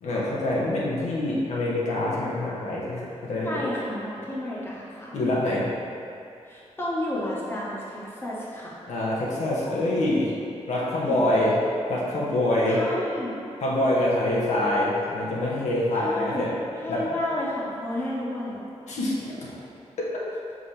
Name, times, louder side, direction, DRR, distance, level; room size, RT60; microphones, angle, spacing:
voice 1, 0.0-3.6 5.1-5.7 8.9-10.3 10.7-11.6 11.9-12.8 13.6-16.5 16.9-17.0 18.9-19.6 20.1-20.2, left 1 dB, 85° left, -6 dB, 1.1 m, -25 dB
voice 2, 3.4-5.1 6.5-8.8 10.7-11.4 12.7-13.3 15.9-16.5 16.8-18.6, left 1 dB, 20° left, -6 dB, 1.1 m, -31 dB
5.7 x 5.1 x 3.3 m, 2.5 s
wide cardioid pair, 130°, 12 cm